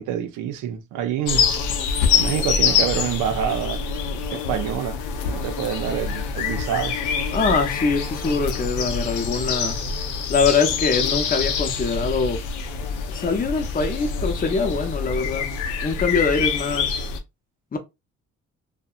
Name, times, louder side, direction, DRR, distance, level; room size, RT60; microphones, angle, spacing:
voice 1, 0.0-1.4 2.1-3.8 4.3-5.0 5.2-7.0, right 10 dB, 85° right, 0.5 m, -27 dB
sound 1, 1.3-17.2, left 6 dB, 90° left, 0.5 m, -25 dB
voice 2, 7.3-9.8 10.3-12.4 13.1-15.5 15.8-17.1 17.7-17.8, left 4 dB, 30° left, 0.6 m, -23 dB
2.7 x 2.1 x 2.3 m
cardioid pair, 90°, 30 cm